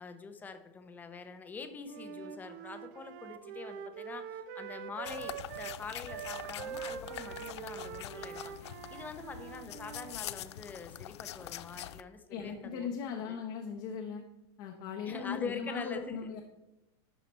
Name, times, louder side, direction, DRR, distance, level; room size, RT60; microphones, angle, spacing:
voice 1, 0.0-13.4 15.1-16.3, left 5 dB, 10° left, 9 dB, 0.6 m, -45 dB
Wind instrument woodwind instrument, 1.8-10.2, right 9 dB, 45° right, 0.5 m, -44 dB
sound 1, 5.0-12.0, left 12 dB, 90° left, 0.4 m, -44 dB
voice 2, 12.3-14.2 14.6-16.4, left 6 dB, 45° left, 2 dB, 0.8 m, -38 dB
11.5 x 4.1 x 4.2 m, 0.98 s
supercardioid pair, 150°, 14 cm